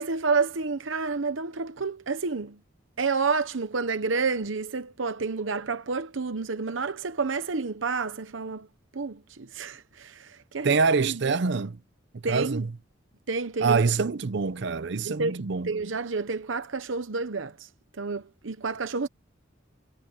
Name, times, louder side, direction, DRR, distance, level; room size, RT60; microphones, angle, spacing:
voice 1, 0.0-2.6 3.0-8.7 8.9-10.8 11.1-11.3 12.2-12.7 13.3-13.8 15.0-15.4 15.6-17.5 18.0-19.1, right 4 dB, 90° right, 0.9 m, -29 dB
voice 2, 10.6-11.8 12.3-12.7 13.6-15.7, right 4 dB, 65° right, 0.6 m, -25 dB
head